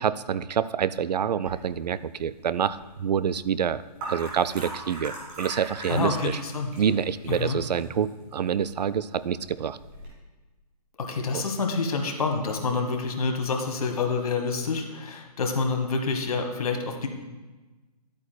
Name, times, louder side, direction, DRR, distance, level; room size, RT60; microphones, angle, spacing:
voice 1, 0.0-3.8 4.1-6.4 6.8-9.8 11.3-11.4, right 8 dB, 75° right, 15 dB, 0.4 m, -27 dB
sound 1, 1.4-10.1, right 2 dB, 15° right, 1.8 m, -42 dB
voice 2, 5.9-6.7 7.3-7.6 11.0-17.1, left 4 dB, 60° left, 3 dB, 1.4 m, -27 dB
12.0 x 8.4 x 2.3 m, 1.2 s
hypercardioid pair, 170°, 21 cm